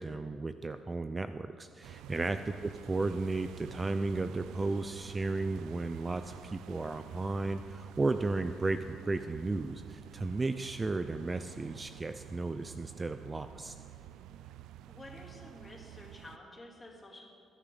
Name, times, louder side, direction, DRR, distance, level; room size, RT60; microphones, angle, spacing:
voice 1, 0.0-13.8, right 3 dB, 25° right, 10 dB, 0.4 m, -34 dB
sound 1, 1.8-16.4, right 12 dB, 90° right, 0.4 m, -50 dB
voice 2, 14.9-17.2, left 1 dB, 20° left, -3 dB, 3.2 m, -51 dB
21.0 x 10.0 x 3.9 m, 2.4 s
cardioid pair, 90°, 0 cm